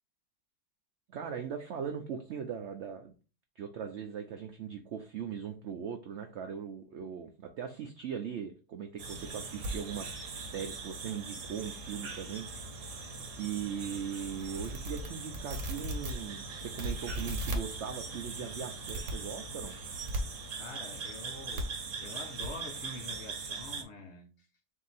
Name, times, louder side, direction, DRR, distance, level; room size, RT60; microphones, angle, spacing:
voice 1, 1.1-3.1 3.6-10.1 10.4-12.9 13.4-19.7, right 7 dB, 85° right, 0.6 m, -39 dB
sound 1, 9.0-23.8, right 2 dB, 55° right, 1.1 m, -39 dB
voice 2, 20.6-24.5, left 3 dB, 55° left, 0.9 m, -46 dB
3.7 x 2.7 x 4.0 m
omnidirectional pair, 1.7 m